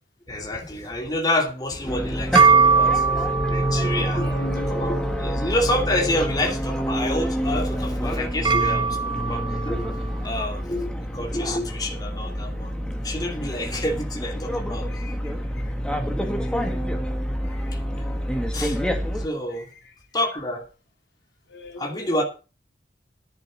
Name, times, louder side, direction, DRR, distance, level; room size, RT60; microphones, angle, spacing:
voice 1, 0.3-3.0 3.4-12.7 13.0-14.9 18.5-18.8 19.1-19.7 20.1-20.7 21.8-22.2, left 1 dB, 25° left, 2.7 m, -28 dB
sound 1, 1.7-10.2, right 5 dB, 25° right, 1.1 m, -24 dB
sound 2, 1.9-19.3, equal, 5° left, 1.9 m, -27 dB
voice 2, 4.2-4.7 14.9-15.3 15.6-15.7 16.4-16.7 17.5-17.7 21.5-22.2, left 2 dB, 75° left, 2.4 m, -39 dB
11.0 x 8.3 x 6.4 m
head